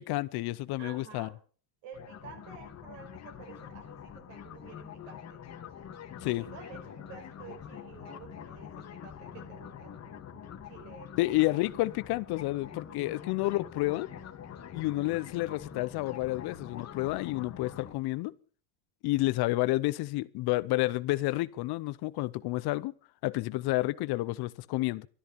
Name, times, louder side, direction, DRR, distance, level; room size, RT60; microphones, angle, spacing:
voice 1, 0.0-1.3 6.2-6.5 11.2-14.1 14.7-18.3 19.0-22.9 23.2-25.1, left 19 dB, 50° left, 0.7 m, -30 dB
voice 2, 0.8-1.4 1.8-5.4 6.4-11.1 12.9-13.1, right 6 dB, 70° right, 5.1 m, -51 dB
sound 1, 1.9-17.9, left 8 dB, 30° left, 1.5 m, -45 dB
13.0 x 11.5 x 6.8 m
supercardioid pair, 125°, 49 cm